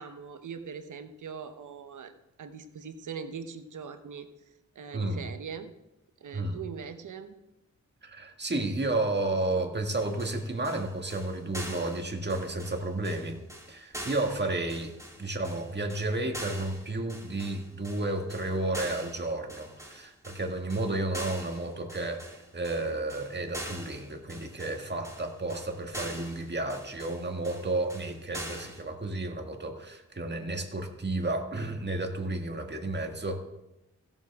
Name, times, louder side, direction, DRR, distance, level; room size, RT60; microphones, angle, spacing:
voice 1, 0.0-2.1 2.4-4.3 4.7-5.7 6.2-7.4, right 6 dB, 85° right, 9 dB, 0.9 m, -41 dB
voice 2, 4.9-5.2 6.3-6.6 8.0-13.4 13.7-14.9 15.2-33.4, right 2 dB, 35° right, 4 dB, 1.8 m, -32 dB
sound 1, 9.9-28.8, equal, 10° right, 2.8 m, -43 dB
16.0 x 7.2 x 3.6 m, 0.93 s
cardioid pair, 50°, 30 cm